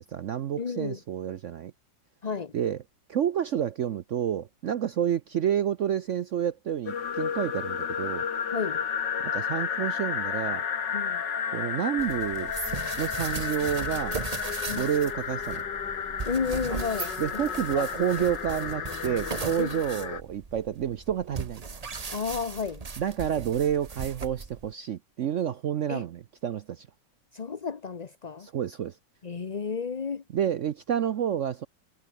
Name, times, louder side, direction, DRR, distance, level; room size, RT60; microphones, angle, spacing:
voice 1, 0.0-1.7 2.5-2.8 3.1-8.2 9.2-10.6 11.5-12.5 13.0-14.2 14.7-15.6 17.2-21.6 23.0-26.9 28.4-29.0 30.3-31.7, right 9 dB, 65° right, 0.7 m, -29 dB
voice 2, 0.6-1.0 2.2-2.5 8.5-8.8 10.9-11.2 14.7-14.9 16.3-17.1 17.7-17.9 19.6-19.8 22.1-22.8 25.9-26.0 27.3-28.5 29.2-30.2, left 5 dB, 35° left, 0.6 m, -32 dB
sound 1, 6.9-20.2, left 7 dB, 75° left, 2.4 m, -32 dB
sound 2, 12.0-24.7, right 4 dB, 30° right, 0.8 m, -38 dB
omnidirectional pair, 2.0 m